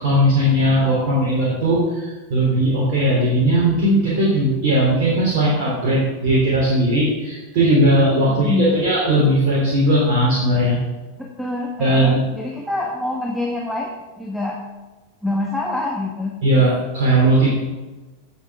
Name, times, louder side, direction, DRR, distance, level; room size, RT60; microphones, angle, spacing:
voice 1, 0.0-10.8 11.8-12.2 16.4-17.5, right 1 dB, 50° right, -6 dB, 3.3 m, -18 dB
voice 2, 8.3-8.8 11.2-13.9 14.2-14.6 15.2-16.4, left 2 dB, ahead, -1 dB, 1.5 m, -25 dB
16.0 x 7.2 x 3.6 m, 1.2 s
figure-of-eight pair, 90°, 0 cm